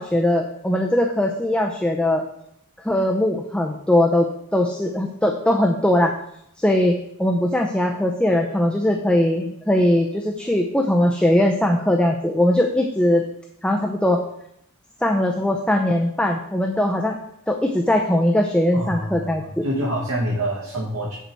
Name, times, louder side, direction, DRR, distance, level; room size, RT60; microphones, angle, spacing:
voice 1, 0.0-2.2 2.8-6.1 6.6-13.2 13.6-14.2 15.0-17.2 17.5-19.6, left 1 dB, 5° left, 2 dB, 0.6 m, -20 dB
voice 2, 18.7-21.1, equal, 70° right, -4 dB, 1.7 m, -26 dB
7.5 x 6.8 x 4.6 m, 0.76 s
head